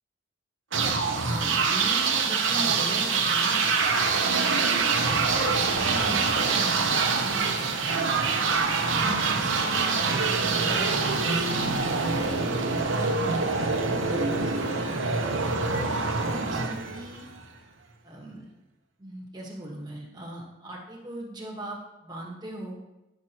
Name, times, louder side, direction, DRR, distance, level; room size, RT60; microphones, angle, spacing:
sound 1, 0.7-17.4, right 4 dB, 80° right, 0.9 m, -25 dB
voice 1, 0.9-4.6 5.0-8.5 8.9-17.3 18.0-18.5 19.0-22.8, right 1 dB, 20° right, -1 dB, 1.4 m, -40 dB
9.6 x 6.1 x 3.0 m, 0.97 s
head